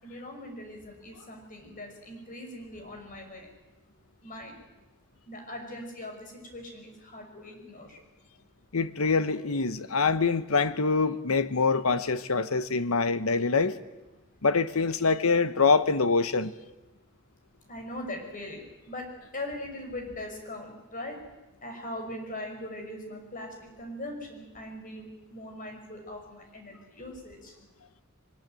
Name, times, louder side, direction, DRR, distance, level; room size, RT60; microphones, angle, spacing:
voice 1, 0.0-3.5 4.2-4.5 5.3-8.0 17.7-19.1 19.3-21.2 21.6-27.6, left 1 dB, 40° left, 3 dB, 5.9 m, -40 dB
voice 2, 8.7-13.8 14.4-16.5, left 4 dB, 80° left, 12 dB, 1.1 m, -25 dB
23.0 x 21.0 x 9.2 m, 1.1 s
head